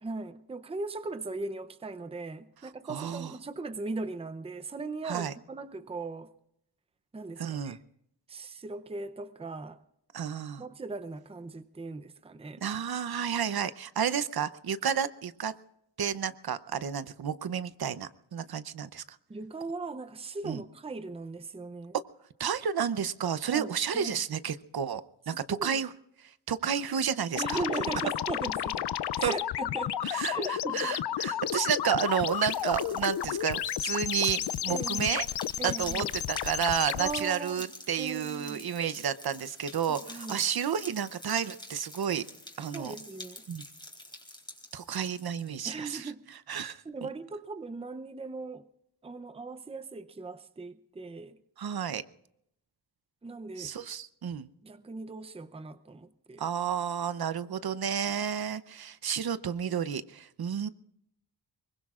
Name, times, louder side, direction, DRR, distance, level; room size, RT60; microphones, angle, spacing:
voice 1, 0.0-6.3 7.1-7.8 8.3-9.8 10.6-12.6 19.3-22.0 23.5-24.2 25.5-25.8 27.4-28.9 29.2-30.0 30.3-31.4 34.7-35.2 35.6-36.1 37.0-37.7 38.0-38.6 40.1-40.4 42.6-43.4 45.6-46.2 46.8-48.7 49.0-51.4 53.2-53.9 54.6-56.5, right 3 dB, 15° right, 0.6 m, -39 dB
voice 2, 2.9-3.3 5.0-5.3 7.4-7.8 10.1-10.6 12.6-15.5 16.0-19.0 20.4-20.6 22.4-25.9 26.2-27.6 29.2-29.4 30.0-30.4 30.7-35.2 35.6-42.2 42.6-42.9 43.5-43.6 44.7-46.1 46.5-47.1 51.6-52.0 53.6-54.5 56.4-60.7, right 8 dB, 60° right, 0.8 m, -31 dB
sound 1, 27.3-37.2, left 11 dB, 70° left, 0.6 m, -32 dB
sound 2, 31.3-45.6, left 1 dB, 10° left, 3.7 m, -47 dB
24.5 x 22.5 x 2.5 m
wide cardioid pair, 160°, 42 cm